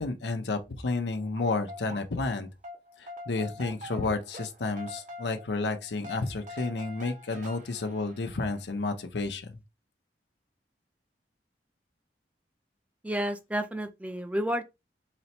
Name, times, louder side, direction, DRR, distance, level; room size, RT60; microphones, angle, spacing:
voice 1, 0.0-2.5 3.0-9.6, left 3 dB, 85° left, 0.6 m, -31 dB
sound 1, 1.1-2.4 2.6-8.8, left 1 dB, 45° right, 0.8 m, -45 dB
voice 2, 13.0-14.6, equal, 10° right, 0.4 m, -31 dB
4.0 x 2.1 x 4.2 m
head